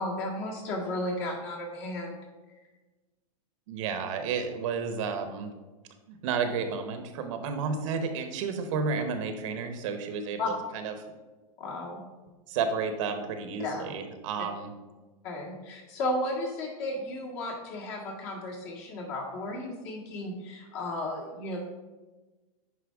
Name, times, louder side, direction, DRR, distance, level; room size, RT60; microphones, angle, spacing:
voice 1, 0.0-2.2 10.4-10.5 11.6-12.0 13.6-13.8 15.2-21.6, left 1 dB, 45° left, -1 dB, 2.0 m, -34 dB
voice 2, 3.7-5.5 6.1-10.4 10.7-10.9 12.5-14.7, right 5 dB, 55° right, 7 dB, 0.9 m, -31 dB
9.8 x 4.5 x 3.5 m, 1.2 s
supercardioid pair, 145°, 20 cm